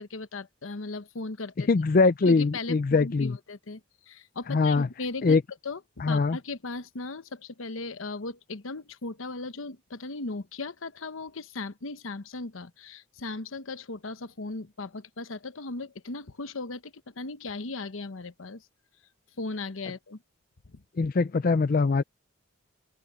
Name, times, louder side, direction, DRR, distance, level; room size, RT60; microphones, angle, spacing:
voice 1, 0.0-1.7 2.2-3.8 4.1-18.7 19.4-20.2 20.7-20.8, left 3 dB, 90° left, 1.0 m, -37 dB
voice 2, 1.7-3.4 4.5-4.9 5.2-5.4 6.0-6.4 21.0-22.0, left 4 dB, 45° left, 0.4 m, -22 dB
open air
head